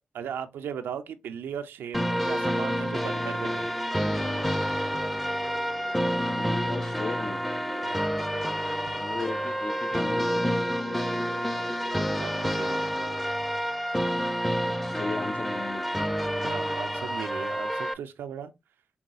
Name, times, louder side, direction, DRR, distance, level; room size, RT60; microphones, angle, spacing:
voice 1, 0.1-3.7 7.8-8.1 12.0-12.9 16.4-18.5, right 8 dB, 90° right, 0.4 m, -37 dB
sound 1, 1.9-17.9, equal, 5° left, 0.6 m, -28 dB
sound 2, 3.1-13.3, left 1 dB, 80° left, 1.3 m, -46 dB
voice 2, 6.2-7.4 8.9-10.6 14.6-16.1, left 3 dB, 50° left, 0.6 m, -36 dB
5.5 x 2.3 x 2.6 m
supercardioid pair, 40°, 4 cm